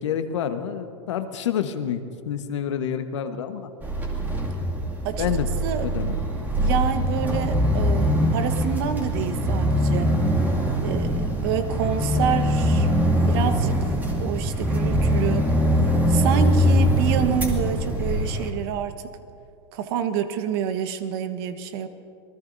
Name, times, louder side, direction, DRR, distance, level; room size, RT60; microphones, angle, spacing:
voice 1, 0.0-3.7 5.2-5.5 5.8-6.2, left 9 dB, 80° left, 8 dB, 1.3 m, -28 dB
sound 1, 3.8-18.5, equal, 10° right, 2.3 m, -22 dB
voice 2, 6.6-10.1 10.8-12.9 13.2-13.9 14.2-15.5 16.1-18.9 19.7-21.9, right 8 dB, 55° right, 9 dB, 1.3 m, -28 dB
27.0 x 19.5 x 2.7 m, 2.5 s
hypercardioid pair, 120°, 15 cm